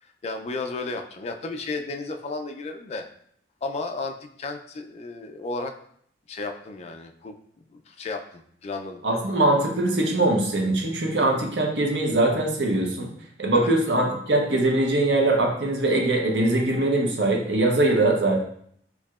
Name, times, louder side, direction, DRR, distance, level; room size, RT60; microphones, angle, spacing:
voice 1, 0.0-3.1 3.6-5.7 6.3-7.3 7.7-9.0 13.5-13.7, left 3 dB, 35° left, 5 dB, 0.3 m, -33 dB
voice 2, 9.0-13.1 13.4-18.4, right 2 dB, 70° right, 1 dB, 0.8 m, -22 dB
4.5 x 2.7 x 2.4 m, 0.66 s
head